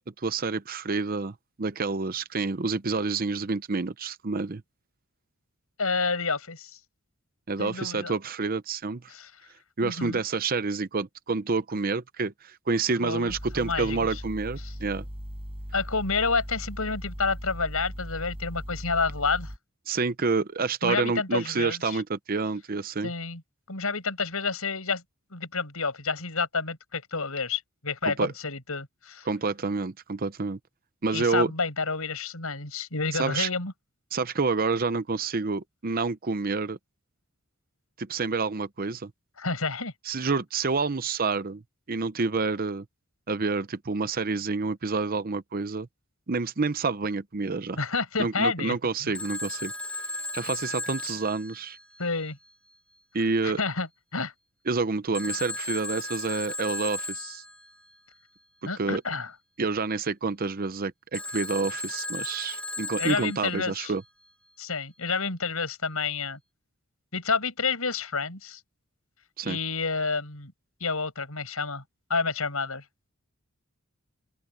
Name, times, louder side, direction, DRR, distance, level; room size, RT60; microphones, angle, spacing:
voice 1, 0.2-4.6 7.5-9.0 9.8-15.0 19.9-23.1 28.1-28.3 29.2-30.6 31.0-31.5 33.1-33.5 34.1-36.8 38.0-39.1 40.0-41.6 41.9-42.8 43.3-45.9 46.3-47.8 48.2-50.0 50.3-51.8 53.1-53.6 54.7-57.4 58.8-59.0 59.6-64.0 69.4-69.6, right 4 dB, 40° right, 0.7 m, -28 dB
voice 2, 5.8-6.8 7.6-8.1 9.1-9.3 9.8-10.2 13.0-14.1 14.6-14.7 15.7-19.5 20.8-22.0 23.0-23.4 23.7-25.0 25.3-29.3 31.1-33.7 39.4-39.9 47.8-48.8 49.0-49.1 52.0-52.4 53.4-54.3 58.7-59.3 63.0-63.9 64.6-66.4 67.1-68.6 69.4-70.5 70.8-71.8 72.1-72.8, left 4 dB, 75° left, 5.7 m, -29 dB
sound 1, 13.3-19.6, equal, 25° right, 6.5 m, -38 dB
Telephone, 49.1-52.2 55.1-57.7 61.1-63.8, left 2 dB, 5° left, 1.2 m, -35 dB
open air
head